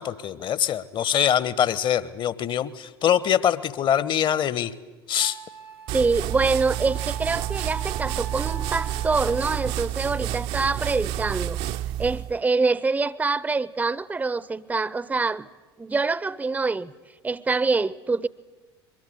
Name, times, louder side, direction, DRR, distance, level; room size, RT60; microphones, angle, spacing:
voice 1, 0.0-4.7 5.1-5.4, left 9 dB, 35° left, 1.2 m, -23 dB
Wind instrument woodwind instrument, 5.2-9.8, right 7 dB, 85° right, 2.1 m, -41 dB
voice 2, 5.9-11.6 12.0-15.5 15.8-16.9 17.2-18.3, right 4 dB, 10° right, 0.8 m, -25 dB
sound 1, 5.9-12.4, right 12 dB, 45° right, 0.7 m, -30 dB
23.5 x 22.0 x 8.4 m
figure-of-eight pair, 70°, 13 cm